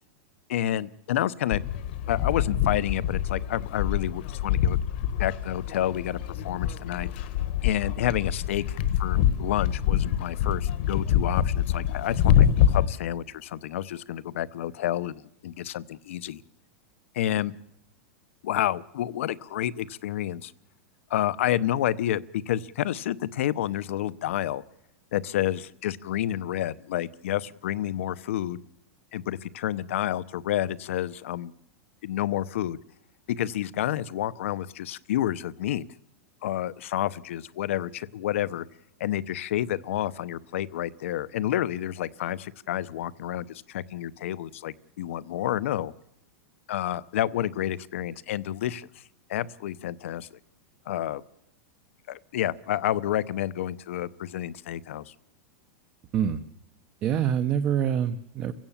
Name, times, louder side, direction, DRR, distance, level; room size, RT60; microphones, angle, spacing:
voice 1, 0.5-1.6 2.1-4.8 5.2-7.1 7.6-16.4 17.1-17.5 18.4-20.5 21.1-24.6 25.1-28.6 29.1-31.5 32.0-32.8 33.3-35.9 36.4-38.6 39.0-45.9 46.7-48.9 49.3-50.3 50.9-51.2 52.1-55.1, left 12 dB, 65° left, 19 dB, 0.8 m, -29 dB
sound 1, 1.5-12.9, left 10 dB, 45° left, 1.2 m, -25 dB
voice 2, 57.0-58.5, right 9 dB, 20° right, 10 dB, 0.8 m, -25 dB
29.5 x 16.5 x 7.3 m, 0.82 s
supercardioid pair, 175°, 8 cm